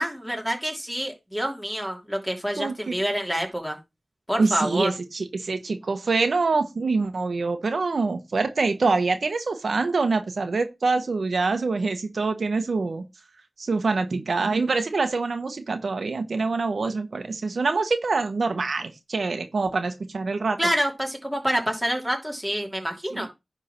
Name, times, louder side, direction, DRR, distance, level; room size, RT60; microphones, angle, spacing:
voice 1, 0.0-3.8 4.3-4.9 20.6-23.3, equal, ahead, 2 dB, 3.2 m, -27 dB
voice 2, 2.6-2.9 4.4-13.0 13.6-20.6 23.1-23.3, right 3 dB, 65° right, 7 dB, 1.3 m, -25 dB
10.5 x 3.7 x 5.9 m, 0.23 s
wide cardioid pair, 70°, 0 cm